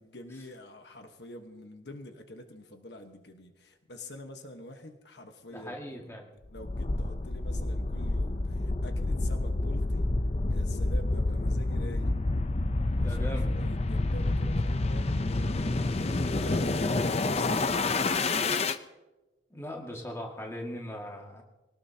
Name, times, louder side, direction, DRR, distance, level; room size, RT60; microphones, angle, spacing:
voice 1, 0.0-5.7 6.5-10.1 10.5-12.1 12.9-16.0 16.3-17.8, left 1 dB, 65° left, 5 dB, 1.2 m, -46 dB
voice 2, 5.5-6.3 12.9-13.6 19.5-21.4, equal, 15° left, 0 dB, 1.9 m, -39 dB
sound 1, 6.6-18.8, left 2 dB, 35° left, 0.6 m, -28 dB
24.0 x 18.0 x 2.8 m, 1.1 s
head